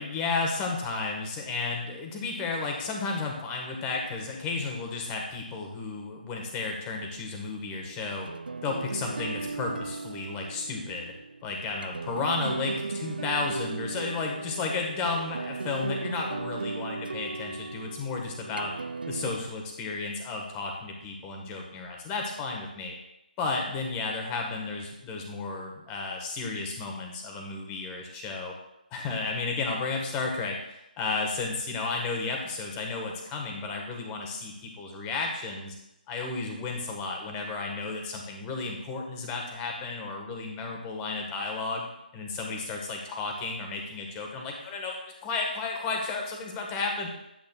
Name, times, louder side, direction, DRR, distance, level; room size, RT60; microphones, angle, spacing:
voice 1, 0.0-8.3 8.6-11.1 11.4-18.7 19.1-22.9 23.4-28.5 28.9-35.7 36.1-41.9 42.1-45.0 45.2-47.1, left 3 dB, 20° left, 1 dB, 1.4 m, -33 dB
sound 1, 7.7-19.3, right 4 dB, 75° right, 0.4 m, -37 dB
10.0 x 8.8 x 2.3 m, 0.86 s
figure-of-eight pair, 145°, 5 cm